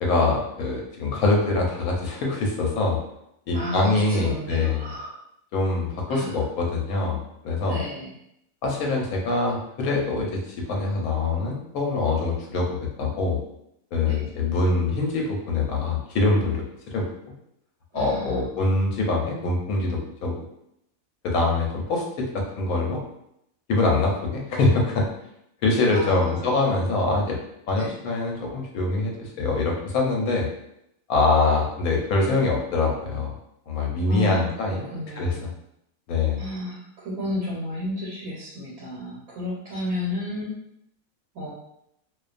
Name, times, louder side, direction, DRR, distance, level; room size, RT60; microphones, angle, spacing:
voice 1, 0.0-3.0 3.5-4.8 5.5-7.8 8.6-13.4 13.9-17.1 17.9-20.4 21.2-23.0 23.7-25.1 25.6-27.4 27.7-30.5 31.1-33.4 33.7-34.9 35.2-35.3 36.1-36.4, left 3 dB, 80° left, -1 dB, 1.1 m, -24 dB
voice 2, 3.5-5.2 6.1-6.4 7.7-8.1 14.0-14.3 17.9-18.5 25.9-26.6 27.8-27.9 34.1-35.5 36.4-40.5 41.3-41.5, left 1 dB, 85° right, -5 dB, 1.1 m, -32 dB
2.5 x 2.2 x 2.4 m, 0.78 s
omnidirectional pair, 1.5 m